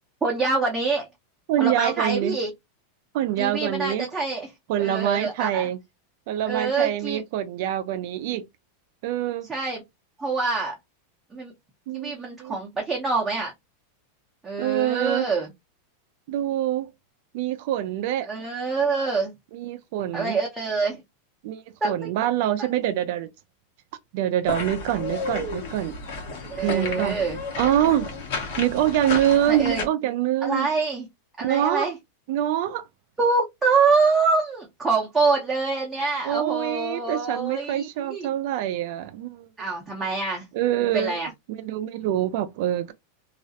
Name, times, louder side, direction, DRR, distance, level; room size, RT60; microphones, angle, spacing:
voice 1, 0.2-1.1 1.6-2.5 3.4-4.5 4.8-5.7 6.4-7.2 9.5-9.8 10.2-10.7 11.3-11.5 11.9-13.5 14.4-15.5 18.3-19.3 20.1-21.0 21.8-22.1 26.5-27.4 29.4-29.9 30.4-31.1 31.4-32.0 33.2-38.3 39.6-40.4 40.8-41.3, right 4 dB, 10° right, 0.6 m, -25 dB
voice 2, 1.5-2.4 3.1-4.1 4.7-5.8 6.3-8.4 9.0-9.5 11.9-12.6 14.6-15.3 16.3-16.9 17.3-18.3 19.5-20.4 21.4-23.3 24.1-26.0 26.6-27.2 27.6-28.1 28.6-30.7 31.4-31.9 32.3-32.8 36.2-39.5 40.5-41.2 41.5-42.9, right 12 dB, 60° right, 0.3 m, -25 dB
sound 1, 24.4-29.9, left 3 dB, 60° left, 1.0 m, -32 dB
2.3 x 2.0 x 2.6 m
supercardioid pair, 140°, 0 cm